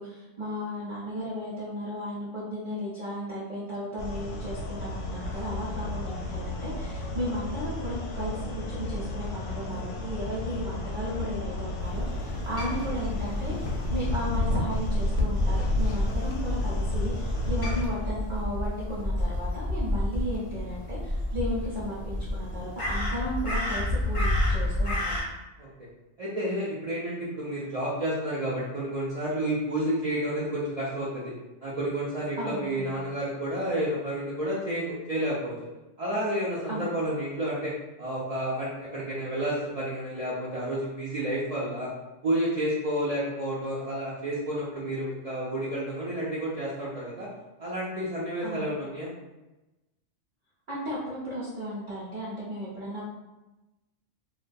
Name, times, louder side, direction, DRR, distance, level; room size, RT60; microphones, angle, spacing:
voice 1, 0.0-8.4 8.7-13.5 13.9-25.2 32.4-32.9 36.7-36.9 48.4-48.7 50.7-53.1, equal, 50° right, -8 dB, 0.7 m, -35 dB
sound 1, 4.0-17.8, left 2 dB, 80° left, 0.9 m, -31 dB
Crow, 11.8-25.2, left 1 dB, 45° left, 0.4 m, -30 dB
voice 2, 26.2-31.3 31.6-35.5 36.0-37.7 38.0-41.9 42.2-47.3 47.6-49.1, right 1 dB, 80° right, -8 dB, 0.3 m, -30 dB
2.2 x 2.2 x 2.5 m, 1.0 s
omnidirectional pair, 1.3 m